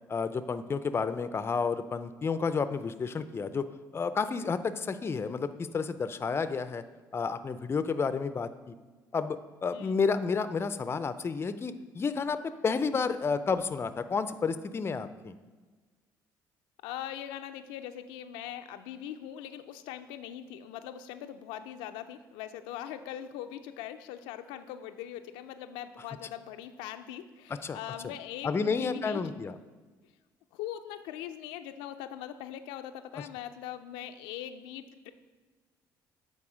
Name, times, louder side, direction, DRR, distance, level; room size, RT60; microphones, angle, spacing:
voice 1, 0.1-3.6 3.9-6.8 7.1-8.7 9.1-15.3 27.6-27.8 28.4-29.5, left 5 dB, 30° left, 12 dB, 0.4 m, -31 dB
voice 2, 16.8-29.2 30.5-35.1, left 11 dB, 90° left, 8 dB, 0.4 m, -41 dB
8.4 x 4.0 x 5.0 m, 1.4 s
supercardioid pair, 75°, 8 cm